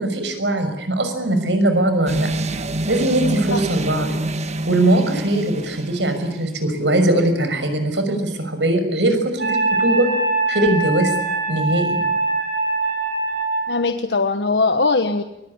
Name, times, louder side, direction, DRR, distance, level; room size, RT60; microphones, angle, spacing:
voice 1, 0.0-2.3 2.9-4.1 4.7-10.1 10.5-11.1 11.5-12.0, right 1 dB, 90° right, 8 dB, 6.1 m, -20 dB
sound 1, 2.1-6.4, right 1 dB, 40° right, 1.6 m, -27 dB
Wind instrument woodwind instrument, 9.4-13.7, right 3 dB, 60° right, 6.5 m, -22 dB
voice 2, 13.7-15.2, left 3 dB, 75° left, 8 dB, 1.4 m, -20 dB
23.5 x 23.5 x 9.8 m, 0.84 s
head